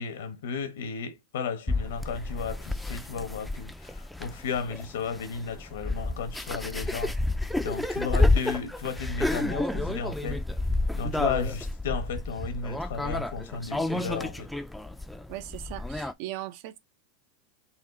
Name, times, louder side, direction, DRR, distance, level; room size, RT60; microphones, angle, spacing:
voice 1, 0.0-7.2 7.6-10.4 10.9-14.5, left 5 dB, 85° left, 1.0 m, -34 dB
sound 1, 1.7-16.1, left 2 dB, 5° left, 0.4 m, -30 dB
voice 2, 15.3-16.8, right 15 dB, 60° right, 0.6 m, -38 dB
4.2 x 2.4 x 4.0 m
supercardioid pair, 130°, 0 cm